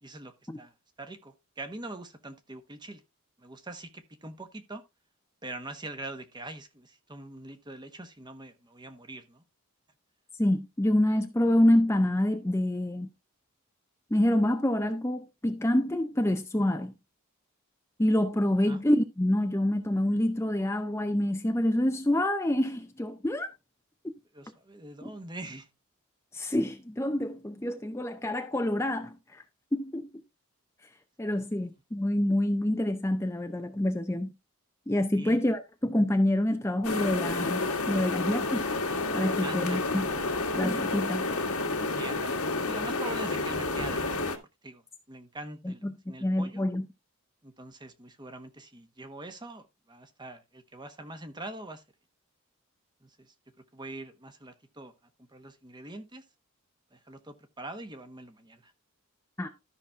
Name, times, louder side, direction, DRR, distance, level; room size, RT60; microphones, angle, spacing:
voice 1, 0.0-0.7 1.0-3.0 3.4-4.8 5.4-9.4 16.7-16.8 18.7-18.8 24.3-25.7 31.4-31.7 35.1-35.4 39.4-40.0 41.9-44.3 44.6-46.6 47.4-51.8 53.0-53.3 53.7-54.9 55.2-56.2 56.9-58.7, right 2 dB, 20° right, 1.2 m, -43 dB
voice 2, 10.4-13.1 14.1-16.9 18.0-23.5 24.0-24.1 25.0-25.1 26.3-29.4 29.7-30.1 31.2-34.3 34.9-38.7 39.1-40.1 40.5-41.2 45.6-46.9 59.4-59.5, left 1 dB, 10° left, 0.6 m, -27 dB
sound 1, 36.8-44.4, left 3 dB, 85° left, 2.1 m, -30 dB
13.0 x 5.9 x 3.5 m
head